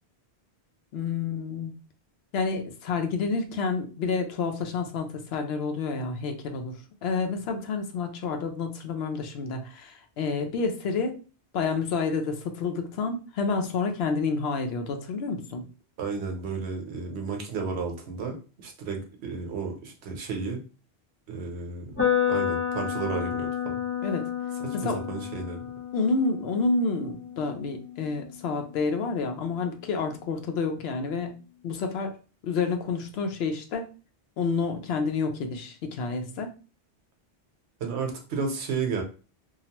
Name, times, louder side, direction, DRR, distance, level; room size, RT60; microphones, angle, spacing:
voice 1, 0.9-1.7 2.3-6.8 7.0-11.2 11.5-15.6 24.0-24.3 24.7-25.0 25.9-32.2 32.4-33.9 34.4-36.5, left 4 dB, 70° left, 5 dB, 0.8 m, -29 dB
voice 2, 16.0-18.4 18.6-20.6 21.3-22.0 22.3-23.7 24.6-25.6 37.8-39.0, right 5 dB, 75° right, 2 dB, 1.0 m, -32 dB
sound 1, 22.0-29.9, left 8 dB, 15° left, 0.5 m, -31 dB
2.8 x 2.0 x 2.8 m, 0.35 s
omnidirectional pair, 1.1 m